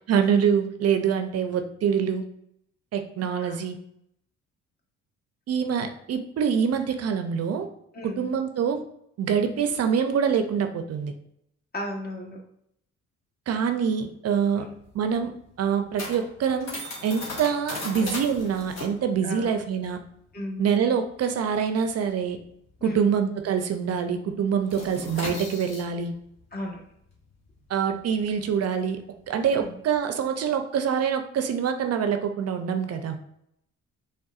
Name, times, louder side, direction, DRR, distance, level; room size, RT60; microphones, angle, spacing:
voice 1, 0.1-2.2 2.9-3.8 5.5-7.7 8.0-8.8 9.2-11.1 13.5-14.7 14.9-20.0 20.6-22.4 22.8-26.1 27.7-29.0 29.3-33.2, right 7 dB, 55° right, 7 dB, 0.5 m, -25 dB
voice 2, 7.9-8.3 11.7-12.4 14.6-14.7 19.2-19.5 20.3-20.6 22.8-23.1 26.5-26.8 29.5-29.7, left 1 dB, 30° left, -1 dB, 1.3 m, -36 dB
sound 1, 14.5-23.4 23.7-23.9 24.2-30.0, left 2 dB, 60° left, 1.6 m, -39 dB
5.3 x 3.5 x 2.4 m, 0.75 s
cardioid pair, 90°, 30 cm